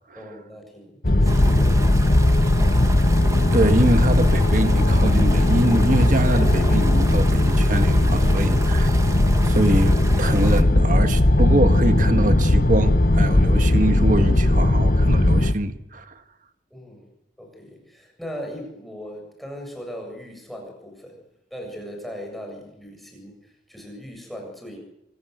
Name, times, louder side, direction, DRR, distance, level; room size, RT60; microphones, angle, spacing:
voice 1, 0.2-2.9 8.1-8.6 16.7-17.1 17.4-21.2 21.5-24.8, equal, ahead, 7.4 m, -39 dB
sound 1, 1.0-15.5, left 1 dB, 50° left, 1.1 m, -18 dB
sound 2, 1.2-10.6, right 2 dB, 15° right, 1.3 m, -35 dB
voice 2, 3.5-9.1 9.4-16.2, right 1 dB, 45° right, 1.6 m, -24 dB
25.0 x 19.5 x 8.0 m
head